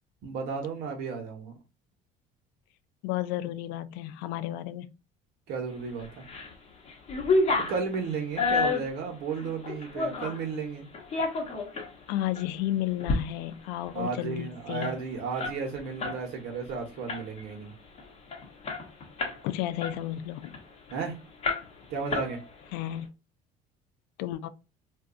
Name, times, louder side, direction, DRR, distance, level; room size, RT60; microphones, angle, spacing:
voice 1, 0.2-1.5 5.5-6.2 7.6-10.9 13.9-17.7 20.9-21.2 21.9-22.4, right 5 dB, 75° right, 1.0 m, -34 dB
voice 2, 3.0-4.9 12.1-14.9 19.4-20.6 22.7-23.1 24.2-24.5, left 13 dB, 90° left, 0.4 m, -32 dB
sound 1, 6.0-6.5 6.8-10.4 10.9-11.9 12.3-12.5 12.9-13.2 13.5-13.6 13.9-16.2 16.5-16.7 17.1-17.5 18.0-18.1 18.3-19.4 19.8-21.0 21.4-21.8 22.1-22.7, left 3 dB, 40° left, 1.0 m, -30 dB
2.6 x 2.3 x 3.7 m
cardioid pair, 120°, 17 cm